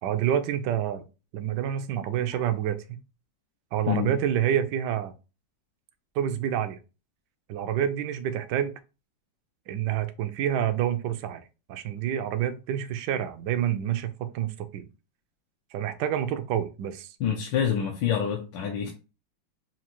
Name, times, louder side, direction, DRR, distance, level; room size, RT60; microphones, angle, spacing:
voice 1, 0.0-1.0 1.3-3.0 3.7-5.1 6.1-6.8 7.5-8.8 9.7-11.4 11.7-14.8 15.7-17.2, right 10 dB, 75° right, 1.1 m, -28 dB
voice 2, 17.2-18.9, left 8 dB, 80° left, 1.4 m, -26 dB
5.9 x 2.4 x 2.9 m
omnidirectional pair, 2.0 m